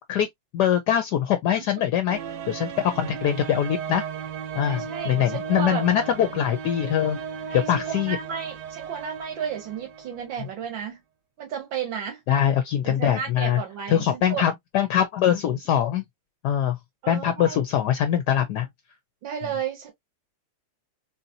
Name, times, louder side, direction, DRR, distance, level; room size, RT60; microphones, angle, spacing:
voice 1, 0.5-2.2 2.5-4.0 4.6-7.2 7.5-8.2 12.3-13.6 13.9-16.0 16.4-16.8 17.1-18.7, left 10 dB, 70° left, 1.1 m, -23 dB
sound 1, 2.1-10.4, right 7 dB, 70° right, 1.3 m, -35 dB
voice 2, 4.6-5.8 7.5-11.0 11.4-12.2 12.8-14.5 17.0-17.6 19.2-19.9, right 8 dB, 85° right, 1.8 m, -33 dB
4.0 x 2.8 x 2.6 m
omnidirectional pair, 2.0 m